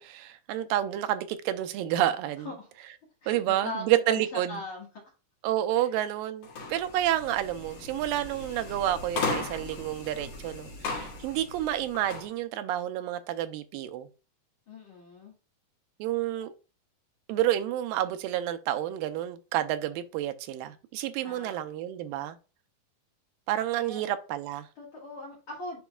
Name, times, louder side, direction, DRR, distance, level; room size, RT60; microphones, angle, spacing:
voice 1, 0.0-2.5 3.3-4.6 5.4-14.1 16.0-16.5 17.3-22.4 23.5-24.7, right 12 dB, 85° right, 2.3 m, -29 dB
voice 2, 3.2-4.9 5.7-5.9 14.7-15.3 21.2-21.8 23.8-24.0 24.8-25.8, left 1 dB, 45° left, 2.2 m, -40 dB
sound 1, 6.4-12.3, left 3 dB, 65° left, 3.2 m, -37 dB
10.5 x 3.9 x 2.3 m
omnidirectional pair, 4.0 m